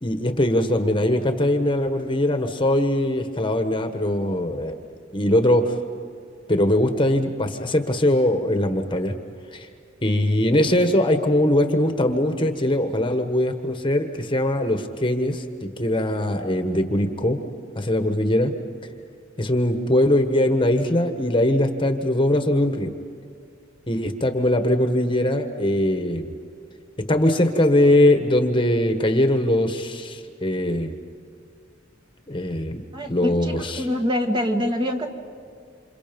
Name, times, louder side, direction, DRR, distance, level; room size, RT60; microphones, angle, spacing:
voice 1, 0.0-4.8 5.1-5.7 6.5-9.1 9.5-9.7 10.0-17.4 17.7-18.5 19.4-22.9 23.9-26.3 27.1-30.9 32.3-32.8 33.1-33.9, left 1 dB, 25° left, 6 dB, 1.5 m, -21 dB
voice 2, 32.9-35.1, left 1 dB, 25° right, 3 dB, 1.9 m, -25 dB
29.0 x 27.5 x 5.4 m, 2.4 s
head